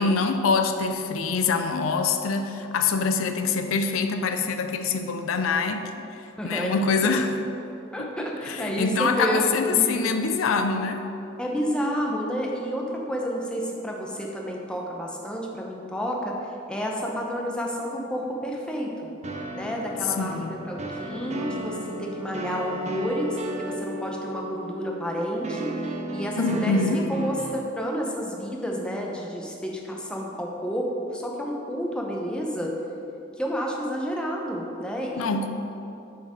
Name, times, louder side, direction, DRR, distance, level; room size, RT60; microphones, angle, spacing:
voice 1, 0.0-7.4 8.0-8.1 8.5-11.1 20.2-20.5 26.4-27.1 35.2-35.5, left 4 dB, 80° left, 7 dB, 0.4 m, -25 dB
voice 2, 6.4-7.1 7.9-10.2 11.4-16.3 16.7-19.1 19.5-26.8 27.1-32.7 33.4-35.2, equal, 5° left, -1 dB, 0.7 m, -30 dB
sound 1, 19.2-27.5, right 1 dB, 35° right, 0.5 m, -34 dB
6.3 x 4.5 x 4.9 m, 2.7 s
head